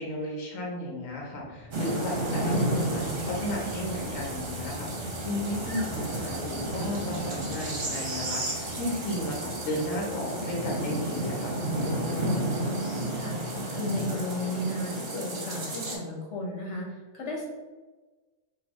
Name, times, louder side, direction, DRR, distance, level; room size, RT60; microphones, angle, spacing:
voice 1, 0.0-11.5, left 1 dB, 85° left, -1 dB, 1.2 m, -34 dB
sound 1, 1.0-13.3, right 1 dB, 15° left, 0.9 m, -45 dB
sound 2, 1.7-15.9, right 1 dB, 50° right, 1.1 m, -32 dB
voice 2, 12.5-16.9 17.1-17.5, left 1 dB, 60° left, -1 dB, 1.3 m, -34 dB
4.9 x 2.7 x 3.5 m, 1.3 s
omnidirectional pair, 1.3 m